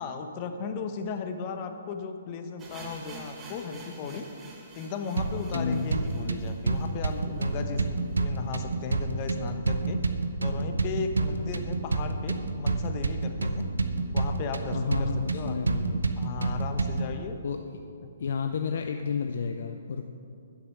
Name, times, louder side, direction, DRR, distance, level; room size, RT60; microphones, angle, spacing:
voice 1, 0.0-4.3 4.8-10.0 10.4-13.7 14.1-15.6 16.2-17.4 18.0-18.1, left 5 dB, 35° left, 6 dB, 1.0 m, -36 dB
sound 1, 2.6-8.5 8.8-8.9 9.1-9.2 9.8-9.9, right 3 dB, 20° right, 1.6 m, -49 dB
sound 2, 5.2-17.2, right 3 dB, 80° right, 0.8 m, -29 dB
voice 2, 5.5-5.9 14.7-16.1 17.4-17.6 18.2-20.0, left 5 dB, 60° left, 6 dB, 0.5 m, -31 dB
10.0 x 7.9 x 6.6 m, 2.5 s
figure-of-eight pair, 130°, 0 cm